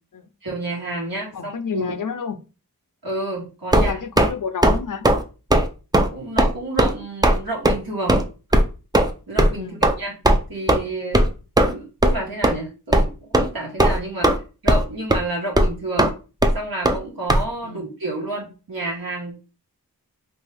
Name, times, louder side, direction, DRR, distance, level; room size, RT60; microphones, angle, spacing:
voice 1, 0.4-1.9 3.0-4.0 6.1-8.2 9.3-10.2 10.5-11.3 11.6-14.3 14.6-16.1 16.5-19.3, right 2 dB, 75° right, 1.2 m, -30 dB
voice 2, 1.3-2.4 3.8-5.1 9.6-9.8 17.6-17.9, left 6 dB, 60° left, 0.5 m, -30 dB
sound 1, 3.7-4.3 4.6-4.8 5.0-5.2 5.5-5.7 5.9-6.1 6.4-6.5 6.8-6.9 7.2-7.4 7.6-7.8 8.1-8.2 8.5-8.6 8.9-9.1 9.4-9.5 9.8-9.9 10.2-10.4 10.7-10.8 11.1-11.3 11.6-11.7 12.0-12.1 12.4-12.5 12.9-13.0 13.3-13.5 13.8-14.4 14.7-14.8 15.1-15.2 15.6-15.7 16.0-16.1 16.4-16.5 16.8-17.0 17.3-17.4, right 1 dB, 10° right, 0.4 m, -16 dB
2.9 x 2.6 x 3.3 m
wide cardioid pair, 45°, 36 cm